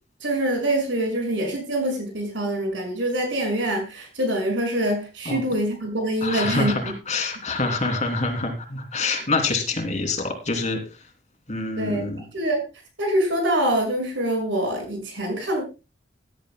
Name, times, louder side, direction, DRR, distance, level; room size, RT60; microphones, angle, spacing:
voice 1, 0.2-6.9 11.8-12.6 13.0-15.6, right 1 dB, 80° right, 3 dB, 5.8 m, -25 dB
voice 2, 6.2-10.8 11.5-12.2, left 3 dB, 40° left, 4 dB, 2.9 m, -26 dB
17.5 x 11.5 x 2.2 m, 0.29 s
head